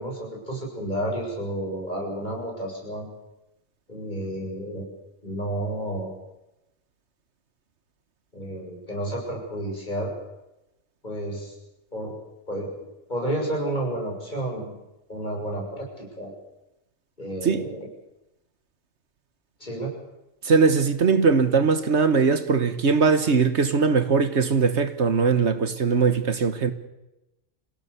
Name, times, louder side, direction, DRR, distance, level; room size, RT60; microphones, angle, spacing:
voice 1, 0.0-3.1 3.9-4.9 5.2-6.1 8.3-10.1 11.0-11.5 11.9-12.1 12.5-14.7 15.1-16.3 17.2-17.9 19.6-19.9, right 1 dB, 35° left, 7.3 m, -31 dB
voice 2, 20.4-26.7, right 5 dB, 65° right, 1.6 m, -20 dB
27.0 x 17.0 x 6.9 m
omnidirectional pair, 1.3 m